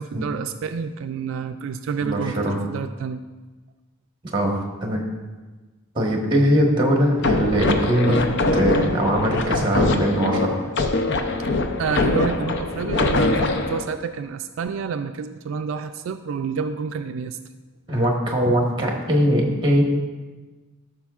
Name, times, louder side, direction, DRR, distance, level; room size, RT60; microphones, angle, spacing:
voice 1, 0.0-3.2 11.8-17.4, right 6 dB, 75° right, 8 dB, 0.3 m, -29 dB
voice 2, 2.0-2.6 4.3-5.0 5.9-8.2 8.5-10.6 17.9-19.8, equal, 25° right, 0 dB, 1.2 m, -21 dB
sound 1, 7.2-13.8, left 2 dB, 60° left, 0.5 m, -23 dB
14.0 x 6.1 x 2.4 m, 1.3 s
head